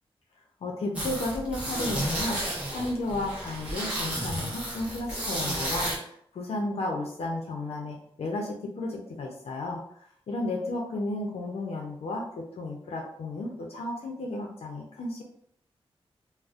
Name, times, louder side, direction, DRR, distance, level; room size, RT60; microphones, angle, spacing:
voice 1, 0.6-9.8 10.3-15.2, left 2 dB, 80° left, 0 dB, 0.5 m, -33 dB
sound 1, 0.9-6.0, right 1 dB, 15° right, 0.9 m, -32 dB
4.0 x 2.0 x 2.4 m, 0.67 s
wide cardioid pair, 160°, 10 cm